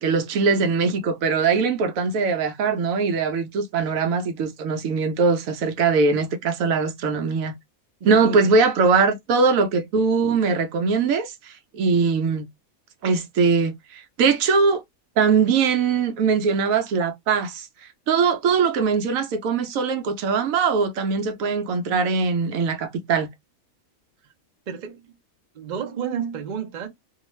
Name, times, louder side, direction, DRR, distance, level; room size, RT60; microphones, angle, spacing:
voice 1, 0.0-7.6 8.0-12.5 13.0-14.8 15.2-17.7 18.1-23.3, right 5 dB, 75° right, 1.0 m, -21 dB
voice 2, 8.0-8.4 24.7-25.1 25.5-26.9, right 7 dB, 55° right, 0.5 m, -31 dB
2.4 x 2.3 x 3.0 m
omnidirectional pair, 1.5 m